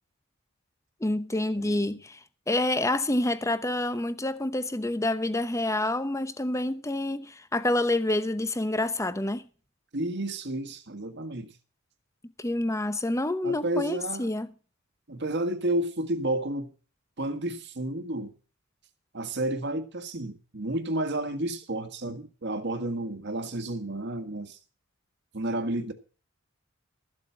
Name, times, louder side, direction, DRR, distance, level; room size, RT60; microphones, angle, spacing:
voice 1, 1.0-2.2 2.5-9.4 12.4-14.5, left 1 dB, 15° left, 0.9 m, -28 dB
voice 2, 1.6-2.0 9.9-11.5 13.4-14.3 15.1-16.7 17.2-18.3 19.1-24.6 25.3-25.9, right 1 dB, 60° right, 1.7 m, -31 dB
14.0 x 7.9 x 5.9 m
head